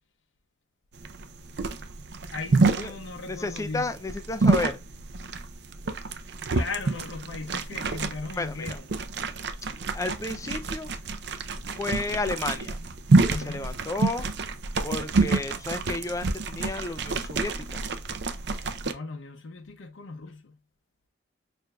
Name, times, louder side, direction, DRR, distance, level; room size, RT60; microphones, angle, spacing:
sound 1, 1.0-18.9, right 3 dB, 55° right, 0.5 m, -28 dB
voice 1, 2.3-3.9 6.5-8.9 13.3-13.8 18.8-20.6, left 4 dB, 85° left, 0.6 m, -37 dB
voice 2, 3.3-4.8 8.4-8.8 9.9-10.9 11.7-12.8 13.3-14.3 14.8-17.9, left 2 dB, 15° left, 0.3 m, -32 dB
6.4 x 2.6 x 2.2 m
head